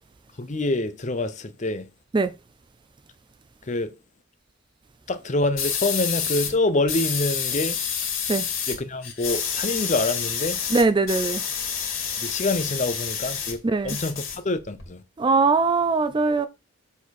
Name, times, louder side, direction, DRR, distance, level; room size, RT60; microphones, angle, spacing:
voice 1, 0.4-1.9 3.7-3.9 5.1-7.8 8.7-10.6 12.2-13.6 13.8-15.0, left 2 dB, 35° left, 0.7 m, -26 dB
sound 1, 5.6-6.5 6.9-8.8 9.0-13.5 13.8-14.8, left 7 dB, 70° left, 2.5 m, -28 dB
voice 2, 10.7-11.4 13.6-14.0 15.2-16.5, right 4 dB, 20° right, 0.3 m, -21 dB
7.1 x 4.4 x 4.1 m
head